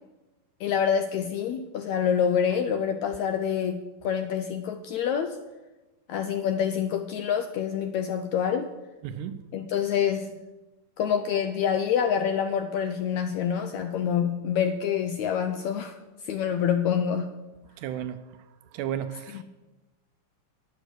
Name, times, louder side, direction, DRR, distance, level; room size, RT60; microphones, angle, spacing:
voice 1, 0.6-5.4 6.1-8.7 9.5-10.4 11.0-16.0 16.2-17.3 19.3-19.4, left 8 dB, 80° left, 8 dB, 1.7 m, -26 dB
voice 2, 9.0-9.4 17.8-18.2 18.7-19.4, right 9 dB, 80° right, 11 dB, 2.1 m, -33 dB
11.5 x 9.7 x 6.2 m, 1.1 s
omnidirectional pair, 3.8 m